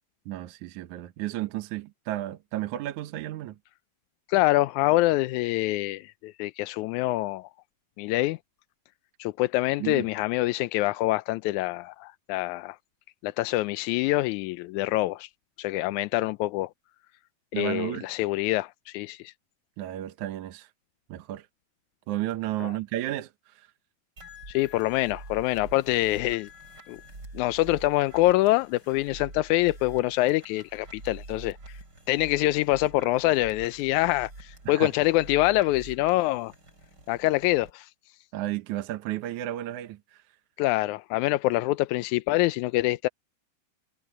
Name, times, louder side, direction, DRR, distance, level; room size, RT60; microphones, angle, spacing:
voice 1, 0.3-3.6 9.8-10.1 17.5-18.1 19.8-20.7 21.1-21.5 22.1-23.7 34.7-34.9 38.3-40.2, right 14 dB, 70° right, 2.3 m, -33 dB
voice 2, 4.3-7.5 8.0-8.4 9.2-12.8 13.2-15.3 15.6-16.7 17.5-19.3 22.6-22.7 24.5-26.5 26.9-27.0 27.3-31.8 32.1-36.5 37.1-37.9 40.6-43.1, left 18 dB, 80° left, 1.8 m, -25 dB
sound 1, 24.2-37.7, right 2 dB, 30° right, 6.8 m, -46 dB
omnidirectional pair, 3.7 m